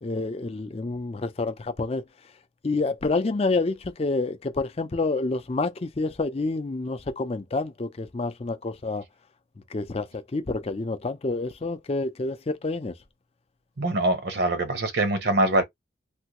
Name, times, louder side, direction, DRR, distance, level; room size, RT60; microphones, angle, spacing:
voice 1, 0.0-2.0 2.6-9.0 9.7-12.9, left 3 dB, 35° left, 0.5 m, -28 dB
voice 2, 13.8-15.6, right 2 dB, 60° right, 0.8 m, -23 dB
3.4 x 2.2 x 2.9 m
head